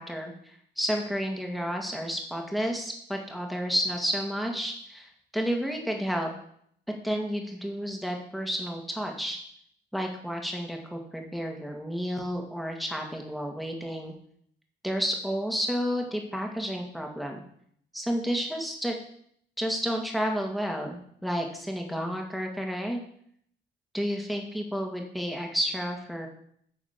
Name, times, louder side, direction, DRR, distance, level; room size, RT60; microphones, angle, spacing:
voice 1, 0.0-6.3 7.0-9.4 9.9-14.1 14.8-17.4 17.9-19.0 19.6-23.0 23.9-26.3, equal, ahead, 2 dB, 2.1 m, -31 dB
9.1 x 4.9 x 6.8 m, 0.66 s
cardioid pair, 90°, 20 cm